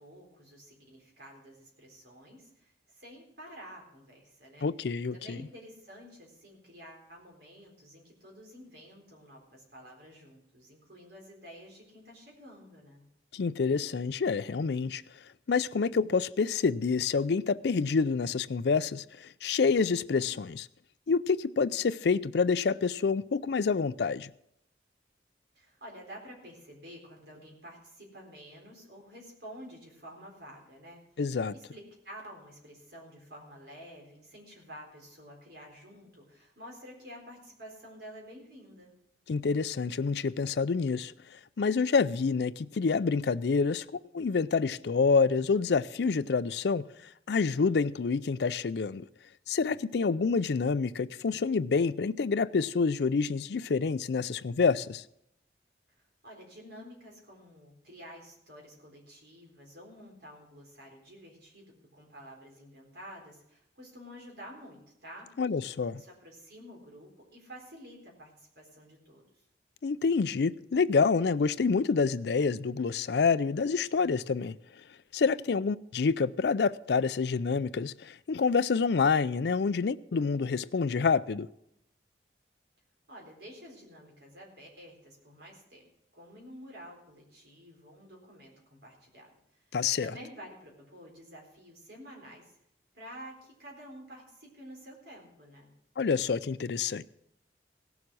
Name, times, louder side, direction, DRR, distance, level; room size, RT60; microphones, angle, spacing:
voice 1, 0.0-4.7 5.1-13.0 25.5-39.0 56.0-65.3 66.0-69.2 83.1-85.9 86.1-89.6 90.0-92.5 92.9-95.7, equal, 65° right, 4.0 m, -50 dB
voice 2, 4.6-5.4 13.3-15.0 15.5-20.7 21.1-24.3 31.2-31.5 39.3-43.8 44.1-46.8 47.3-49.0 49.5-55.0 65.4-66.0 69.8-74.6 75.1-81.5 89.7-90.1 96.0-97.0, left 5 dB, 65° left, 0.4 m, -27 dB
17.0 x 7.2 x 6.2 m
head